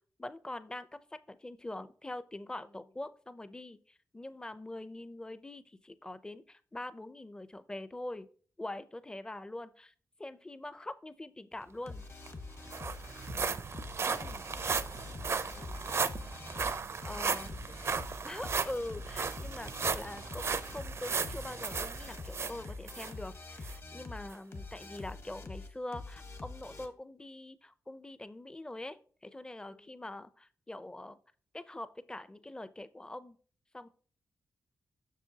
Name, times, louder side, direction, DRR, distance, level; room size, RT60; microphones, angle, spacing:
voice 1, 0.2-0.9 1.3-8.3 8.6-9.9 10.2-12.0 14.0-14.4 16.5-16.7 17.0-17.5 18.2-31.2 31.5-33.4 33.7-33.9, left 1 dB, 15° left, 13 dB, 0.5 m, -43 dB
voice 2, 2.6-3.0 13.4-14.7 15.3-16.2 16.9-18.1 29.6-30.0, left 3 dB, 75° left, 2 dB, 2.6 m, -60 dB
sound 1, 11.9-26.9, left 3 dB, 45° left, 1.1 m, -46 dB
sound 2, 11.9-12.0 12.3-23.1 23.6-23.8 24.3-24.4, right 5 dB, 45° right, 0.5 m, -36 dB
7.4 x 6.3 x 2.8 m, 0.42 s
wide cardioid pair, 105°, 6 cm